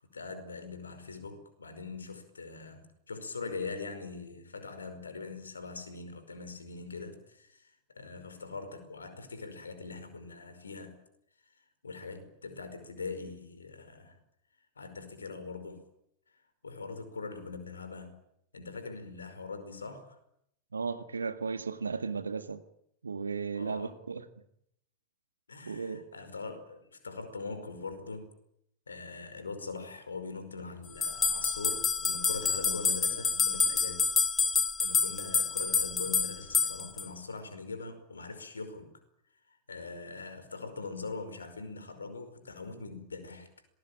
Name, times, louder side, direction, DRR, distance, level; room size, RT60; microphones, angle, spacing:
voice 1, 0.1-11.0 11.8-14.2 14.8-15.8 16.6-18.2 18.5-20.2 23.5-23.9 25.5-28.3 28.9-34.1 34.8-38.9 39.5-43.5, left 4 dB, 75° left, 5.1 m, -42 dB
voice 2, 20.7-22.6 23.0-24.3 25.7-26.0, right 5 dB, 75° right, 1.9 m, -35 dB
sound 1, 31.0-37.1, left 5 dB, 20° left, 2.0 m, -28 dB
26.5 x 20.0 x 9.1 m
figure-of-eight pair, 90°, 0 cm